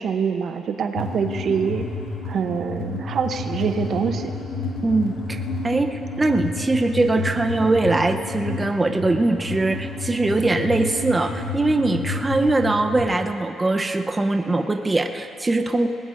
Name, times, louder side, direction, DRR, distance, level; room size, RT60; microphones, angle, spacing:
voice 1, 0.0-1.8 2.2-4.3, right 6 dB, 60° right, 7 dB, 0.8 m, -25 dB
sound 1, 1.0-13.0, left 3 dB, 80° left, 2.3 m, -30 dB
voice 2, 4.8-15.9, right 2 dB, 20° right, 5 dB, 0.8 m, -22 dB
20.5 x 19.5 x 2.6 m, 2.7 s
cardioid pair, 90°, 0 cm